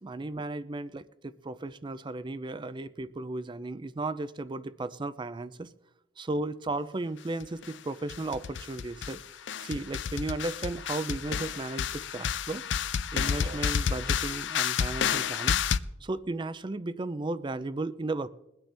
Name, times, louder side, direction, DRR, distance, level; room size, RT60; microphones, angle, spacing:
voice 1, 0.0-5.7 6.2-9.2 9.6-12.6 13.1-15.6 16.0-18.3, right 2 dB, 25° right, 15 dB, 0.4 m, -35 dB
sound 1, 7.4-7.7 8.1-9.2 9.5-15.8, left 7 dB, 70° left, 0.5 m, -30 dB
22.0 x 8.9 x 3.4 m, 0.91 s
head